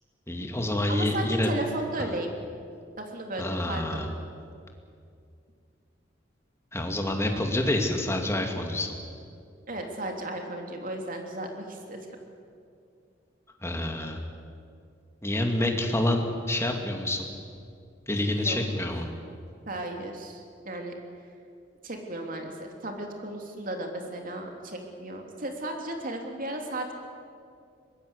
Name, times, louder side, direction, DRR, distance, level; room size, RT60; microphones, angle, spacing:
voice 1, 0.3-1.5 3.4-4.1 6.7-9.0 13.6-14.2 15.2-17.3 18.1-19.1, left 1 dB, 15° left, 3 dB, 2.5 m, -27 dB
voice 2, 0.9-2.3 3.0-4.0 9.7-12.1 18.3-18.6 19.7-20.9 21.8-26.9, right 1 dB, 50° right, 2 dB, 3.2 m, -35 dB
23.0 x 20.0 x 8.3 m, 2.4 s
head